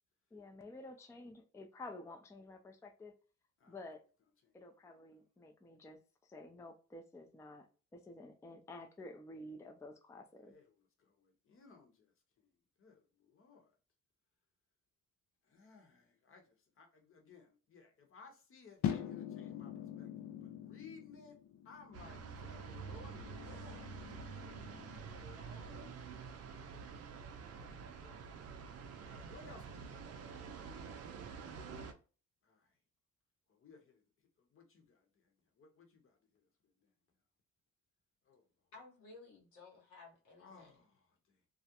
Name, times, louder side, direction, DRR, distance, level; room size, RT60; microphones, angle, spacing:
voice 1, 0.3-3.1 3.7-4.0 4.5-7.7 7.9-10.5, left 2 dB, 10° left, 0.4 m, -51 dB
voice 2, 10.4-12.1 12.4-12.5 12.8-13.7 15.4-20.1 20.4-21.4 21.6-23.9 24.2-25.9 27.4-27.7 28.0-28.5 29.3-30.1 32.4-32.7 33.5-34.0 34.4-36.7 38.3-38.4 40.4-41.4, left 5 dB, 45° left, 0.9 m, -59 dB
sound 1, 18.8-25.0, left 9 dB, 70° left, 0.5 m, -44 dB
sound 2, 21.9-31.9, right 6 dB, 55° right, 0.5 m, -48 dB
voice 3, 38.7-40.7, left 3 dB, 90° left, 1.1 m, -56 dB
2.4 x 2.0 x 2.7 m
cardioid pair, 90°, 30 cm